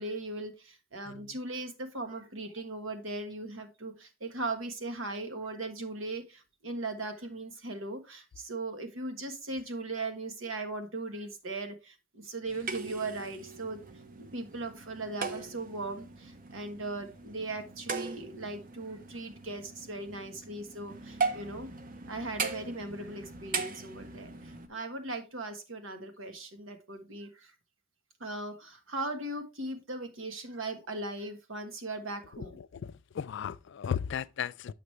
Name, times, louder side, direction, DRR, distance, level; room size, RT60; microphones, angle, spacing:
voice 1, 0.0-13.8 14.2-21.7 22.1-27.5 28.2-32.6, right 2 dB, 80° right, 1.3 m, -38 dB
voice 2, 1.0-1.4 32.3-34.7, left 8 dB, 60° left, 0.3 m, -36 dB
sound 1, 12.5-24.7, right 4 dB, 45° right, 0.7 m, -39 dB
8.0 x 6.0 x 3.2 m
head